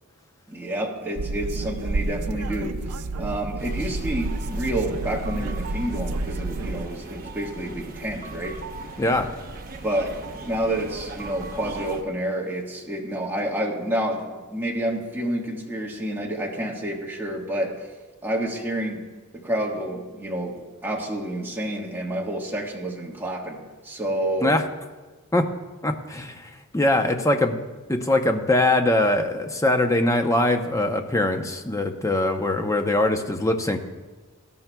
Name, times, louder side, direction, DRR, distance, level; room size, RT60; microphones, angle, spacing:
voice 1, 0.5-2.9 3.2-8.6 9.8-17.9 18.2-19.1 19.3-24.5, right 1 dB, 10° right, -2 dB, 1.4 m, -29 dB
sound 1, 1.2-6.9, right 3 dB, 85° right, 0.5 m, -30 dB
sound 2, 3.6-12.0, right 2 dB, 40° right, 1.0 m, -38 dB
voice 2, 25.8-27.6 27.9-33.8, left 1 dB, 15° left, 5 dB, 0.7 m, -22 dB
18.0 x 12.5 x 2.3 m, 1.3 s
head